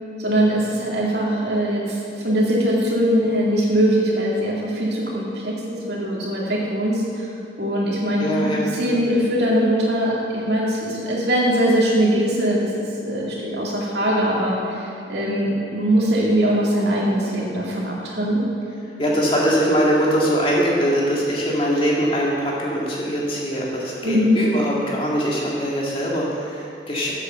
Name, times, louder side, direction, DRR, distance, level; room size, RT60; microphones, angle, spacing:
voice 1, 0.2-7.3 7.6-8.3 8.6-12.7 13.0-18.4 24.0-24.3, equal, 65° right, -4 dB, 2.4 m, -21 dB
voice 2, 8.2-8.7 19.0-27.1, equal, 30° left, -4 dB, 2.0 m, -22 dB
8.4 x 8.1 x 6.7 m, 2.6 s
head